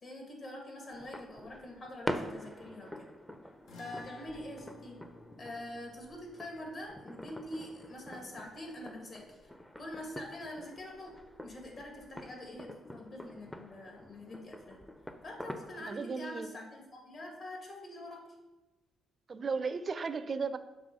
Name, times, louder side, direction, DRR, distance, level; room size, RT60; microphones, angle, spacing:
voice 1, 0.0-3.1 3.7-5.0 5.4-9.4 9.8-11.1 11.4-14.8 15.2-18.2, left 1 dB, 55° left, 0 dB, 1.9 m, -45 dB
sound 1, 0.9-15.9, left 1 dB, 10° left, 0.5 m, -45 dB
sound 2, 3.7-10.2, left 3 dB, 80° left, 0.8 m, -57 dB
voice 2, 15.8-16.5 19.3-20.6, right 5 dB, 45° right, 12 dB, 0.4 m, -35 dB
6.8 x 3.0 x 5.4 m, 1.1 s
supercardioid pair, 70°, 0 cm